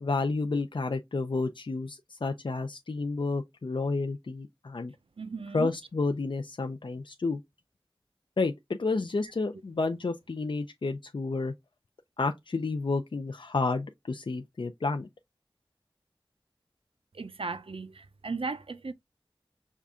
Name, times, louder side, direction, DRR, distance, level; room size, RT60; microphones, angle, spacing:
voice 1, 0.0-4.9 5.5-7.4 8.4-11.5 12.2-15.1, left 3 dB, 60° left, 0.4 m, -30 dB
voice 2, 5.2-5.7 17.1-18.9, right 4 dB, 80° right, 0.5 m, -36 dB
5.4 x 2.4 x 3.5 m
wide cardioid pair, 50°, 9 cm